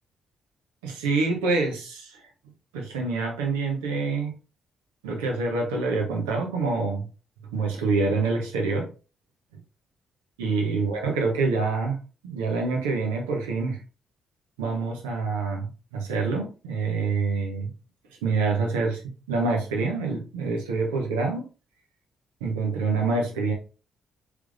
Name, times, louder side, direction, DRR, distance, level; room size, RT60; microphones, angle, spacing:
voice 1, 0.8-2.2 2.9-4.3 5.0-7.1 7.5-8.9 10.4-12.0 12.2-13.8 14.6-17.7 18.2-19.0 19.3-21.5 22.4-23.5, right 4 dB, 75° right, 1 dB, 0.9 m, -26 dB
4.6 x 3.4 x 2.4 m, 0.34 s
figure-of-eight pair, 40°, 0 cm